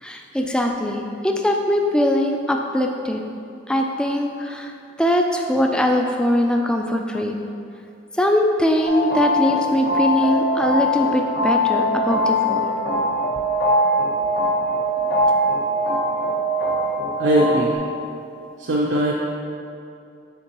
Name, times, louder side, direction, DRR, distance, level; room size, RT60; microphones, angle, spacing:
voice 1, 0.0-3.2 3.7-4.7 5.0-7.4 8.1-12.7 15.0-15.1, equal, 5° left, 2 dB, 0.3 m, -21 dB
sound 1, 8.8-17.8, equal, 55° left, 0.7 m, -21 dB
voice 2, 17.2-17.7 18.6-19.1, right 1 dB, 65° right, -4 dB, 0.5 m, -19 dB
8.6 x 3.7 x 2.9 m, 2.5 s
head